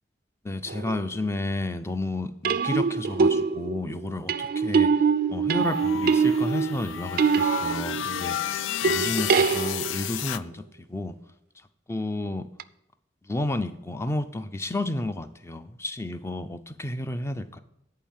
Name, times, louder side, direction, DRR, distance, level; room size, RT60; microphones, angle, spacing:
voice 1, 0.4-5.0 5.3-10.6 10.9-11.1 11.9-12.5 13.2-17.6, left 2 dB, 15° left, 11 dB, 0.4 m, -31 dB
sound 1, 0.7-1.0 2.4-8.4 8.8-10.2 12.6-12.7, right 5 dB, 50° right, 0.3 m, -24 dB
sound 2, 5.6-10.4, left 11 dB, 80° left, 0.3 m, -32 dB
10.5 x 4.7 x 7.3 m, 0.81 s
head